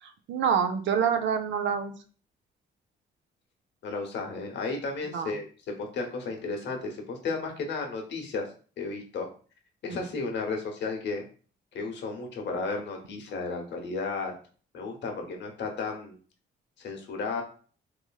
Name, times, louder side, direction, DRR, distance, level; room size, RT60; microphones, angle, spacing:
voice 1, 0.0-1.9 5.0-5.3, right 7 dB, 70° right, 8 dB, 0.4 m, -27 dB
voice 2, 3.8-5.4 5.8-8.5 8.8-9.3 9.8-11.2 11.7-14.3 14.7-16.2 16.8-17.4, left 4 dB, 60° left, 3 dB, 0.8 m, -33 dB
3.0 x 2.5 x 2.3 m, 0.41 s
cardioid pair, 90°, 20 cm